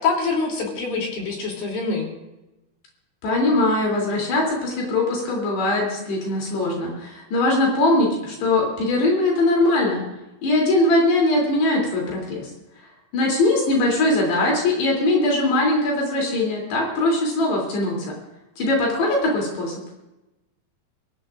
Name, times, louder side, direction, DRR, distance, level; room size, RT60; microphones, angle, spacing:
voice 1, 0.0-2.1, left 4 dB, 60° left, -1 dB, 4.9 m, -25 dB
voice 2, 3.2-10.0 10.4-12.5 13.1-18.1 18.6-19.8, left 2 dB, 75° left, -2 dB, 5.2 m, -21 dB
24.0 x 16.5 x 2.5 m, 0.98 s
omnidirectional pair, 4.8 m